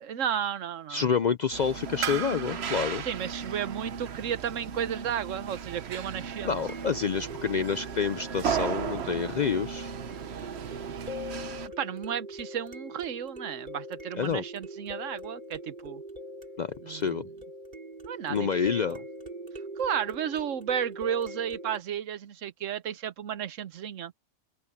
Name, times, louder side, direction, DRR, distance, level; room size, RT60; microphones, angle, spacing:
voice 1, 0.0-1.1 3.0-6.5 11.6-16.0 16.8-17.2 18.1-19.0 19.8-24.1, right 9 dB, 85° right, 1.2 m, -33 dB
voice 2, 0.9-3.0 6.4-9.9 14.1-14.4 16.6-17.3 18.3-19.0, left 6 dB, 60° left, 0.4 m, -28 dB
sound 1, 1.5-11.7, right 7 dB, 60° right, 1.1 m, -35 dB
sound 2, 2.0-2.1 6.7-21.8, equal, 40° right, 3.1 m, -42 dB
open air
omnidirectional pair, 1.3 m